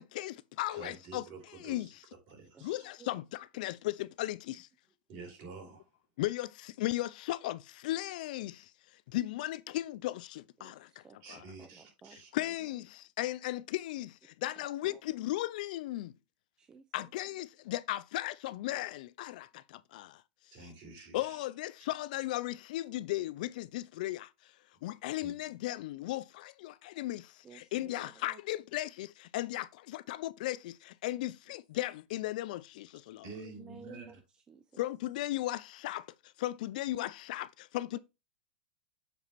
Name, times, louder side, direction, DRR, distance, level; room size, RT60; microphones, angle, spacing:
voice 1, 0.0-1.2 1.6-1.9 2.6-4.7 6.2-8.7 9.1-11.0 11.3-11.4 12.3-16.1 16.9-20.2 21.1-24.5 24.8-33.3 34.8-38.0, left 16 dB, 60° left, 0.4 m, -36 dB
voice 2, 0.7-1.9 2.3-2.8 5.1-5.9 11.2-12.3 20.5-21.4 25.2-25.4 33.2-34.1, right 3 dB, 45° right, 4.1 m, -48 dB
voice 3, 2.5-3.2 10.6-12.7 14.6-15.0 16.6-17.1 27.4-28.4 33.4-34.8 37.9-38.0, right 6 dB, 15° right, 0.5 m, -55 dB
7.0 x 4.1 x 4.0 m
supercardioid pair, 140°, 5 cm